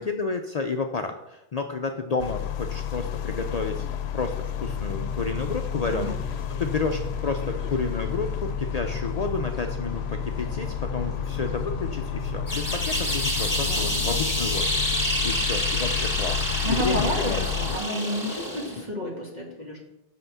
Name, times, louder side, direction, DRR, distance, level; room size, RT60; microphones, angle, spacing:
voice 1, 0.0-3.9 4.1-6.2 6.5-14.7 15.2-17.5 18.8-18.9, left 4 dB, 50° left, 4 dB, 0.6 m, -31 dB
sound 1, 2.2-17.8, left 9 dB, 90° left, 0.8 m, -31 dB
sound 2, 4.6-12.4, right 2 dB, 85° right, 1.9 m, -39 dB
sound 3, 12.5-18.8, equal, 15° left, 1.9 m, -28 dB
voice 2, 13.6-14.2 16.6-19.8, left 1 dB, 45° right, -2 dB, 2.2 m, -30 dB
6.0 x 5.8 x 6.9 m, 0.87 s
omnidirectional pair, 1.0 m